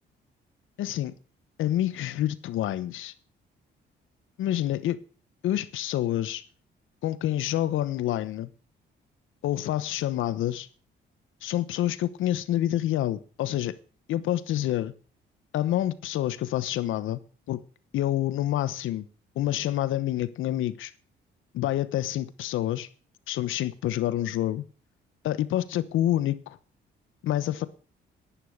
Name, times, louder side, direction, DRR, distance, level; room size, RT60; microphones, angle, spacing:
voice 1, 0.8-1.1 1.6-3.1 4.4-5.0 5.4-6.4 7.0-8.5 9.4-10.7 11.4-13.7 14.1-14.9 15.5-17.2 17.5-17.6 17.9-19.1 19.4-20.9 21.5-22.9 23.3-24.7 25.2-26.6 27.2-27.7, left 13 dB, 85° left, 1.1 m, -27 dB
11.0 x 10.5 x 6.5 m
cardioid pair, 90°, 20 cm